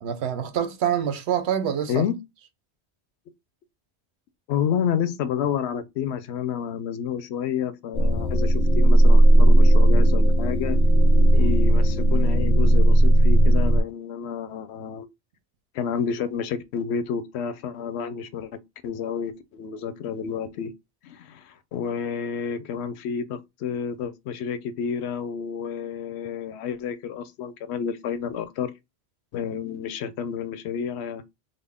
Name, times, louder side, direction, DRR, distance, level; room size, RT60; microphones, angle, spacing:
voice 1, 0.0-2.0, right 9 dB, 90° right, 0.9 m, -26 dB
voice 2, 4.5-10.8 11.3-15.1 15.7-20.7 21.0-28.7 29.3-31.2, left 7 dB, 85° left, 0.8 m, -30 dB
sound 1, 7.9-13.8, right 1 dB, 45° left, 0.6 m, -16 dB
3.7 x 2.1 x 3.5 m
omnidirectional pair, 1.1 m